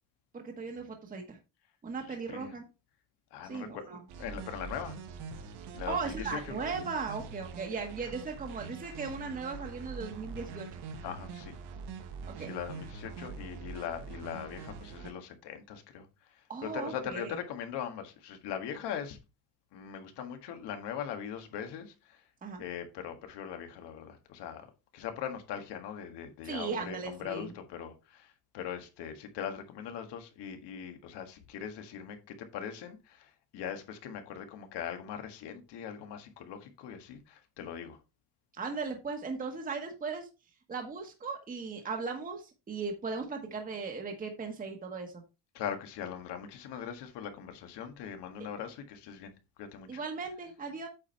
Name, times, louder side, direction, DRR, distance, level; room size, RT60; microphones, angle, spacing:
voice 1, 0.3-1.4 1.8-2.6 3.4-4.0 5.9-10.7 12.3-12.5 16.5-17.3 22.4-22.6 26.4-27.5 38.5-40.3 40.7-45.2 48.4-48.5 49.9-50.9, right 4 dB, 20° right, 1.2 m, -37 dB
voice 2, 2.1-2.5 3.3-3.8 4.2-5.0 5.7-6.6 11.0-11.6 12.4-19.2 19.7-22.2 22.6-38.0 45.5-49.3 49.6-50.0, left 8 dB, 85° left, 1.7 m, -41 dB
sound 1, 4.1-15.1, right 5 dB, 75° right, 1.4 m, -44 dB
8.6 x 4.5 x 4.4 m
cardioid pair, 165°, 40 cm